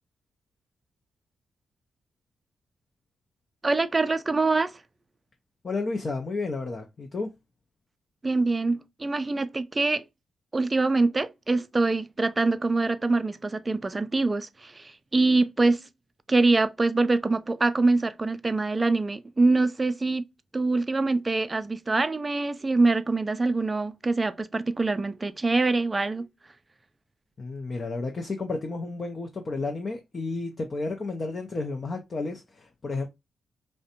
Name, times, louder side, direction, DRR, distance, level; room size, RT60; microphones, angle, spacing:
voice 1, 3.6-4.8 8.2-10.0 10.5-15.8 16.3-20.3 20.5-26.3, right 3 dB, 25° right, 0.3 m, -24 dB
voice 2, 5.6-7.3 27.4-33.1, left 3 dB, 45° left, 0.5 m, -32 dB
2.5 x 2.1 x 2.7 m
cardioid pair, 70°, 0 cm